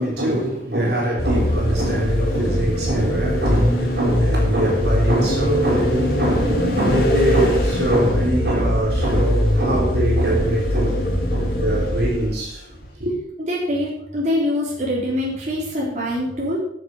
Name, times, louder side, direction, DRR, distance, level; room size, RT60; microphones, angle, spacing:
voice 1, 0.0-12.7 13.0-13.1, right 1 dB, 65° right, 3.8 m, -23 dB
sound 1, 1.2-12.4, left 1 dB, 55° left, 2.9 m, -21 dB
sound 2, 1.8-7.0, equal, 85° right, 2.4 m, -32 dB
voice 2, 13.5-16.6, left 1 dB, 40° right, 3.9 m, -24 dB
10.5 x 6.7 x 7.7 m
head